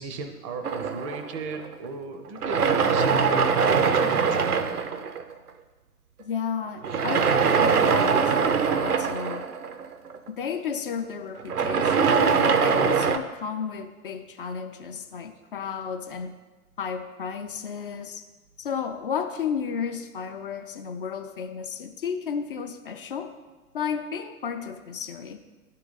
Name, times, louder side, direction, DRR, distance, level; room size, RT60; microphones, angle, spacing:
voice 1, 0.0-4.6, right 4 dB, 25° right, 8 dB, 0.5 m, -35 dB
sound 1, 0.6-1.9 2.4-5.5 6.8-10.3 11.4-13.2, right 6 dB, 85° right, 0.6 m, -23 dB
voice 2, 6.2-9.5 10.3-16.3 16.8-18.2 18.6-23.3 23.7-25.4, left 7 dB, 40° left, 6 dB, 0.4 m, -33 dB
11.0 x 3.7 x 3.9 m, 1.2 s
figure-of-eight pair, 100°, 44 cm